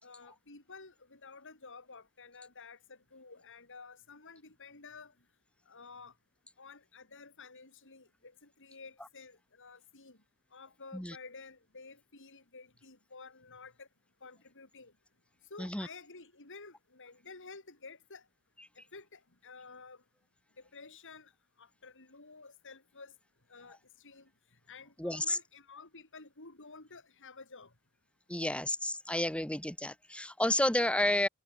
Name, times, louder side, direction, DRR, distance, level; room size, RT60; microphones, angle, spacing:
voice 1, 0.0-5.1 5.7-6.2 6.6-10.2 10.5-13.9 14.2-14.9 15.4-18.3 18.7-20.0 20.6-21.3 21.6-23.2 23.5-27.7 28.4-28.5, left 4 dB, 60° left, 6.1 m, -52 dB
voice 2, 25.0-25.4 28.3-28.7 29.1-31.3, left 1 dB, 5° left, 1.7 m, -30 dB
head